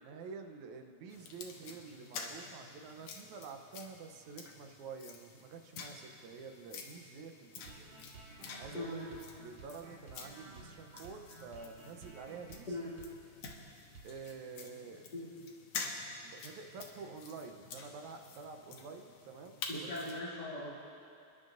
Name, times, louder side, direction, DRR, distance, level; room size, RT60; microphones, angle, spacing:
voice 1, 0.0-7.9 8.6-12.7 14.0-15.1 16.2-19.9, right 5 dB, 80° right, 5 dB, 2.2 m, -49 dB
sound 1, 1.1-20.2, left 4 dB, 75° left, 2.2 m, -49 dB
sound 2, 7.6-13.2 13.5-13.6 13.9-14.1, right 3 dB, 55° right, 2.7 m, -54 dB
voice 2, 8.7-9.1 12.7-12.9 15.1-15.3 19.7-20.8, left 1 dB, 40° left, -7 dB, 2.0 m, -40 dB
28.5 x 10.5 x 2.6 m, 2.5 s
omnidirectional pair, 3.4 m